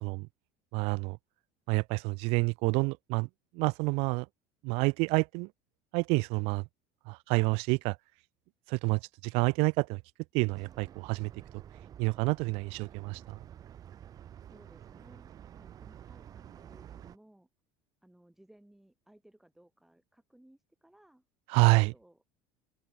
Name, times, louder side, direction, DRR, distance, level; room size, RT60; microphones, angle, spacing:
voice 1, 0.7-1.2 1.7-3.3 3.5-4.3 4.6-5.5 5.9-6.7 7.1-8.0 8.7-10.0 10.3-11.3 12.0-13.4 21.5-21.9, right 29 dB, 60° right, 0.4 m, -28 dB
sound 1, 10.5-17.2, right 10 dB, 30° right, 2.5 m, -50 dB
voice 2, 14.5-17.5 18.0-21.2 21.7-22.2, right 1 dB, 5° right, 1.6 m, -61 dB
open air
cardioid pair, 155°, 12 cm